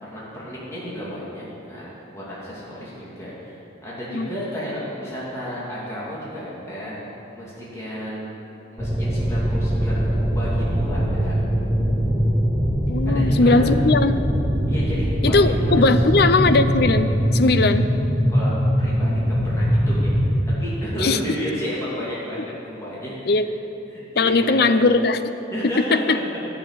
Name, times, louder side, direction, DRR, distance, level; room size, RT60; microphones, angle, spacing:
voice 1, 0.0-7.0 7.3-8.3 8.7-11.4 13.0-13.7 14.7-16.2 18.3-20.2 20.5-23.3 23.9-24.7 25.5-26.4, equal, 15° left, -8 dB, 2.5 m, -32 dB
sound 1, 8.8-20.5, equal, 20° right, 2.7 m, -21 dB
voice 2, 12.9-14.2 15.2-17.9 21.0-21.2 23.3-23.5 24.2-25.2 25.9-26.2, left 3 dB, 60° left, 10 dB, 0.6 m, -19 dB
11.5 x 7.3 x 8.7 m, 3.0 s
head